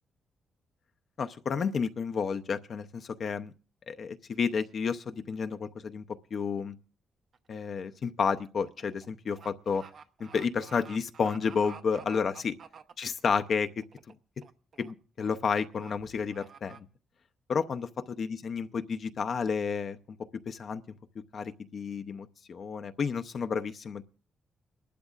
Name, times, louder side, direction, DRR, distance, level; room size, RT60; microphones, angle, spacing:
voice 1, 1.2-3.5 3.9-6.0 6.3-6.8 7.5-9.8 10.2-12.5 13.0-13.8 14.8-16.9 17.5-17.9 18.2-20.0 20.5-20.8 21.3-24.0, left 6 dB, 55° left, 0.6 m, -31 dB
sound 1, 7.3-7.6 7.9-13.4 13.8-14.1 14.4-14.9 15.2-15.3 15.7-15.9 16.3-16.8, right 6 dB, 60° right, 0.9 m, -50 dB
30.0 x 12.0 x 2.4 m
cardioid pair, 80°, 0 cm